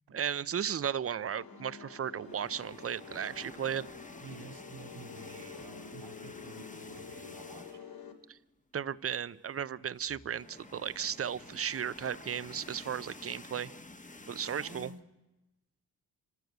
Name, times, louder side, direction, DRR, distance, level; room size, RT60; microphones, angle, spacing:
voice 1, 0.1-3.9 8.3-8.4 8.7-13.7 14.3-14.9, right 8 dB, 35° right, 18 dB, 0.6 m, -35 dB
sound 1, 1.3-8.1, left 6 dB, 60° left, 2.4 m, -49 dB
sound 2, 2.2-8.0 8.4-8.5 8.8-8.9 10.0-15.0, left 2 dB, 20° left, 1.2 m, -50 dB
voice 2, 4.2-7.9 9.8-9.9 14.5-15.0, right 3 dB, 75° right, 5 dB, 2.5 m, -50 dB
25.0 x 13.0 x 8.0 m, 1.0 s
cardioid pair, 60°, 41 cm